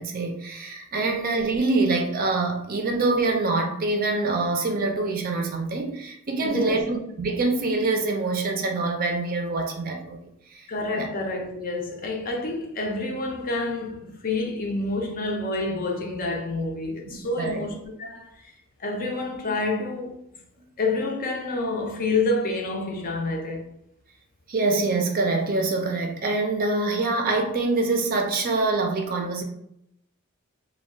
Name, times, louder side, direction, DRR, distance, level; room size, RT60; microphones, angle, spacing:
voice 1, 0.0-10.2 10.5-10.7 11.0-11.1 16.9-17.6 24.5-29.4, right 3 dB, 45° right, 0.4 m, -25 dB
voice 2, 6.4-6.8 10.7-18.3 18.8-20.2 20.8-23.7, left 2 dB, 40° left, 0.5 m, -28 dB
2.3 x 2.2 x 3.6 m
head